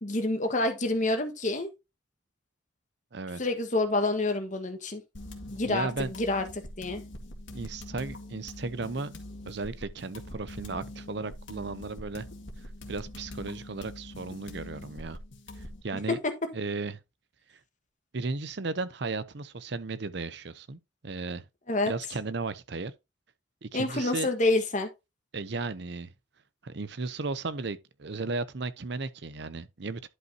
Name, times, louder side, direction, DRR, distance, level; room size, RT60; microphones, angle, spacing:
voice 1, 0.0-1.7 3.4-5.0 5.5-6.5 6.8-7.0 16.2-16.3 21.7-21.9 23.7-24.9, left 2 dB, 40° left, 1.5 m, -27 dB
sound 1, 5.1-15.8, left 1 dB, 70° left, 1.9 m, -44 dB
voice 2, 5.6-6.1 7.5-9.1 9.5-12.3 12.9-15.2 15.6-16.2 16.5-17.0 18.1-21.4 21.9-22.9 23.6-24.3 25.3-26.1 26.6-30.1, right 3 dB, 60° right, 0.7 m, -35 dB
11.0 x 5.3 x 2.8 m
head